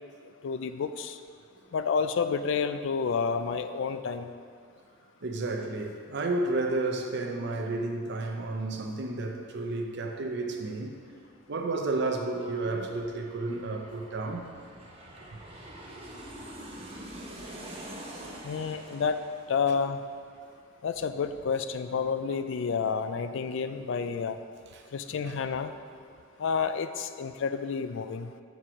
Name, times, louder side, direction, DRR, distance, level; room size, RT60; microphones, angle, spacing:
voice 1, 0.4-1.2 1.7-4.3 18.4-19.2 19.5-20.0 20.8-24.4 24.9-25.7 26.4-28.3, left 5 dB, 65° left, 0.4 m, -30 dB
voice 2, 5.2-11.0 11.5-14.5 18.2-18.4 24.7-24.8 25.2-25.4, right 2 dB, 60° right, 0.7 m, -32 dB
Aircraft, 9.6-20.9 21.2-21.3, right 1 dB, 30° right, 1.1 m, -47 dB
7.2 x 4.7 x 5.0 m
head